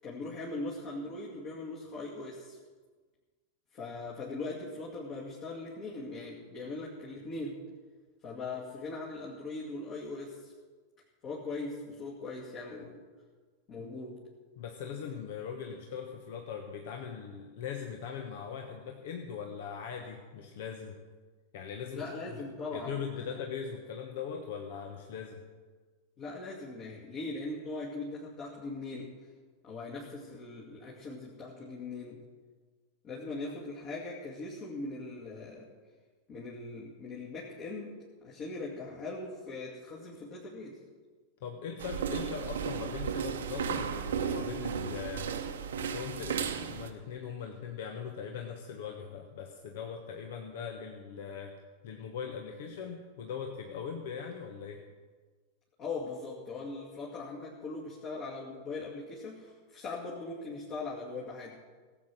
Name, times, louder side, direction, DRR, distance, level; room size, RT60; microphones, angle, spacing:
voice 1, 0.0-2.6 3.7-7.6 8.2-10.5 11.2-13.0 13.7-14.2 21.9-23.3 26.2-29.1 29.6-32.2 33.0-35.7 36.3-38.0 38.2-40.8 55.8-61.6, left 3 dB, 35° left, -4 dB, 2.4 m, -40 dB
voice 2, 14.6-21.0 21.5-22.4 22.7-25.4 41.4-51.5 51.8-54.8, left 7 dB, 55° left, 4 dB, 1.2 m, -40 dB
sound 1, 41.8-46.9, right 7 dB, 65° right, 1.0 m, -34 dB
17.5 x 8.2 x 6.3 m, 1.4 s
figure-of-eight pair, 90°, 0 cm